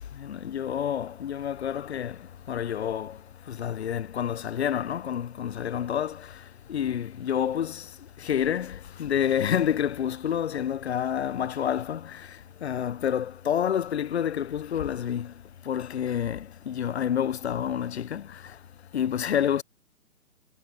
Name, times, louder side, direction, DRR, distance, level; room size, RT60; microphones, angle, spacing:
voice 1, 0.3-2.1 2.5-3.1 3.6-6.1 6.7-7.8 8.3-8.7 9.0-12.0 12.6-15.3 15.7-16.4 16.7-18.2 18.9-19.6, left 9 dB, 45° left, 0.7 m, -28 dB
hypercardioid pair, 150°, 45 cm